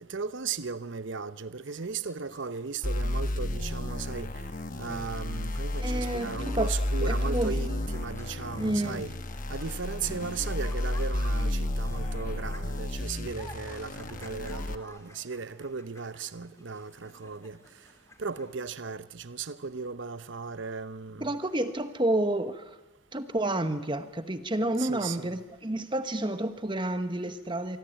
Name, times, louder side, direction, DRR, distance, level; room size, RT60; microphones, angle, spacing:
voice 1, 0.0-4.4 4.8-9.1 9.5-17.6 18.2-21.3 24.8-25.4, right 5 dB, 60° right, 0.8 m, -36 dB
sound 1, 1.6-18.6, left 2 dB, 15° left, 2.9 m, -54 dB
sound 2, 2.8-14.7, left 1 dB, 40° left, 1.2 m, -32 dB
voice 2, 5.8-7.5 8.6-9.0 10.1-10.3 11.9-12.1 21.2-22.8 23.1-27.8, right 1 dB, 20° right, 1.1 m, -30 dB
25.5 x 24.0 x 9.0 m
head